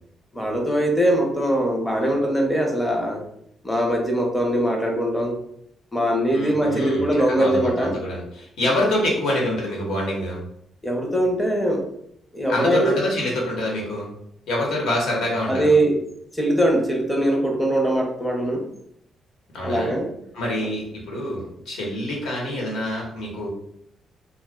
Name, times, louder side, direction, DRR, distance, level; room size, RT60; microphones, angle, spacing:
voice 1, 0.3-3.2 3.6-5.4 5.9-8.0 8.6-8.7 10.8-11.8 12.3-13.0 15.5-16.0 16.3-18.6 19.6-20.1 20.6-20.7, right 1 dB, 5° left, 1 dB, 0.6 m, -21 dB
voice 2, 6.3-10.4 12.5-14.1 14.5-15.7 19.5-20.0 20.3-23.5, left 1 dB, 80° left, -3 dB, 1.1 m, -26 dB
2.4 x 2.1 x 3.5 m, 0.71 s
cardioid pair, 145°, 0 cm